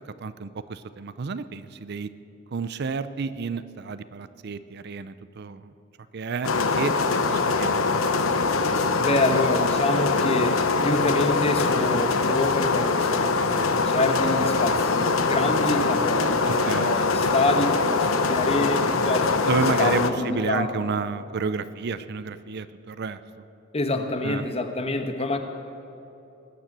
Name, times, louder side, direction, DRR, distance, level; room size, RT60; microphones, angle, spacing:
voice 1, 0.0-2.1 2.5-5.7 6.1-6.9 7.3-7.7 16.5-16.9 19.4-23.2 23.9-24.5, right 4 dB, 55° right, 13 dB, 0.5 m, -31 dB
sound 1, 6.4-20.1, left 4 dB, 85° left, 0.9 m, -23 dB
voice 2, 9.0-20.7 23.7-25.4, left 2 dB, 30° left, 6 dB, 1.2 m, -27 dB
20.5 x 9.3 x 7.4 m, 2.9 s
head